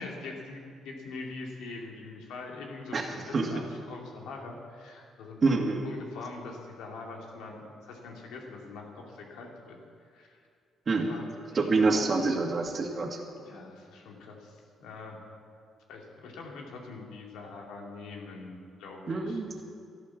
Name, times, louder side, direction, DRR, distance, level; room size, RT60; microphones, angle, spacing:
voice 1, 0.0-5.6 5.8-9.8 10.1-10.4 11.0-11.2 11.5-12.1 13.4-15.2 15.9-19.4, left 3 dB, 90° left, 1 dB, 2.6 m, -43 dB
voice 2, 2.9-3.5 5.4-5.8 10.9-11.1 11.5-13.2 19.1-19.6, right 3 dB, 40° right, 2 dB, 2.0 m, -27 dB
13.5 x 12.0 x 7.5 m, 2.4 s
cardioid pair, 90°, 0 cm